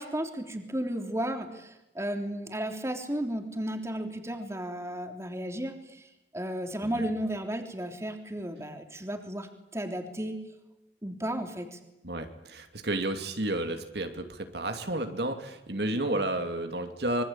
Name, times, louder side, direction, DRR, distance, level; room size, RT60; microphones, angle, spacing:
voice 1, 0.0-6.0 6.3-10.4 11.0-11.8, right 1 dB, 15° right, 5 dB, 3.3 m, -34 dB
voice 2, 12.0-17.2, right 1 dB, 65° right, 6 dB, 2.7 m, -31 dB
26.0 x 23.5 x 9.0 m, 0.91 s
head